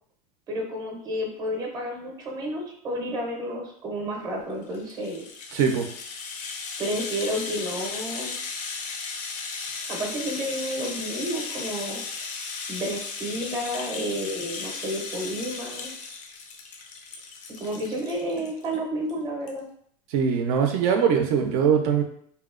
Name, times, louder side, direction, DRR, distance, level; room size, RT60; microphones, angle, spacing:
voice 1, 0.5-5.3 6.8-8.3 9.9-12.0 12.7-15.9 17.6-19.6, equal, 20° right, 0 dB, 0.6 m, -31 dB
Rattle (instrument), 4.6-18.8 19.1-19.2 19.5-19.6, left 4 dB, 40° left, 0.4 m, -36 dB
voice 2, 5.5-5.9 20.1-22.0, right 7 dB, 65° right, 4 dB, 0.5 m, -22 dB
2.7 x 2.0 x 2.4 m, 0.64 s
supercardioid pair, 125°, 20 cm